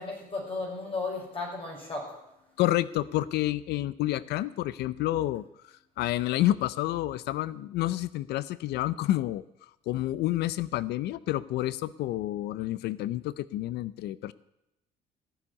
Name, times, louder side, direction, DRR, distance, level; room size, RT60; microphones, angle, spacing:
voice 1, 0.0-2.6, left 3 dB, 30° left, -1 dB, 5.8 m, -35 dB
voice 2, 2.6-14.3, left 15 dB, 75° left, 18 dB, 0.5 m, -29 dB
16.0 x 7.2 x 9.6 m, 0.87 s
cardioid pair, 110°, 17 cm